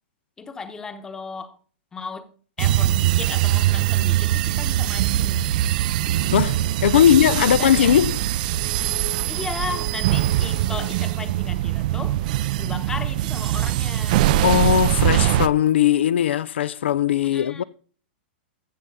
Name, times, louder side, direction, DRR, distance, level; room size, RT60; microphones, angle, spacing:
voice 1, 0.4-1.6 1.9-2.3 2.6-5.5 6.9-8.0 9.3-14.3 17.2-17.6, left 4 dB, 10° left, 0.9 m, -35 dB
sound 1, 2.6-15.5, right 13 dB, 50° right, 0.4 m, -22 dB
voice 2, 6.3-8.2 14.4-17.6, left 10 dB, 90° left, 0.4 m, -19 dB
15.0 x 6.7 x 3.6 m
hypercardioid pair, 155°, 6 cm